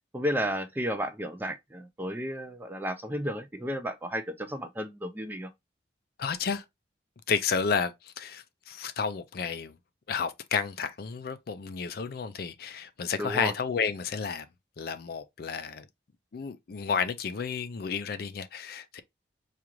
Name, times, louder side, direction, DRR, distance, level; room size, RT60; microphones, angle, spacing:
voice 1, 0.1-5.5 13.2-13.5, equal, 10° right, 0.4 m, -33 dB
voice 2, 6.2-6.6 7.3-9.7 10.1-14.5 14.8-15.8 16.3-19.0, left 6 dB, 55° left, 0.4 m, -31 dB
4.8 x 2.5 x 2.9 m
head